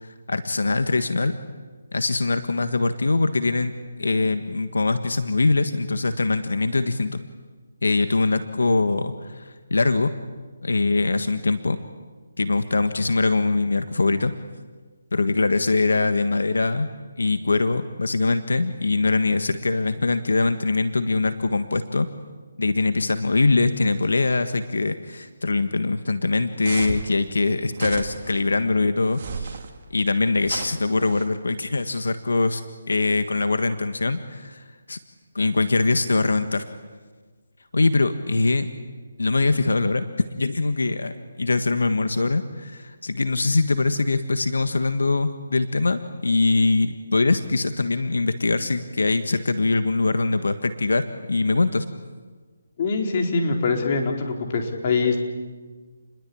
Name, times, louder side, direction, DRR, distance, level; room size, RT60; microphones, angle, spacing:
voice 1, 0.0-1.4 1.9-3.7 4.0-7.2 7.8-10.1 10.6-11.8 12.4-14.3 15.1-16.9 17.2-22.1 22.6-29.6 29.9-32.6 32.9-35.0 35.3-36.6 37.7-38.7 39.2-40.0 40.4-41.1 41.4-51.8, left 3 dB, 85° left, 9 dB, 1.6 m, -22 dB
sound 1, 26.6-27.1 27.7-28.4 29.1-29.7 30.4-31.3, right 5 dB, 40° right, 2.7 m, -33 dB
voice 2, 52.8-55.2, left 4 dB, 35° left, 2 dB, 4.3 m, -23 dB
29.5 x 21.5 x 8.7 m, 1.4 s
hypercardioid pair, 165°, 0 cm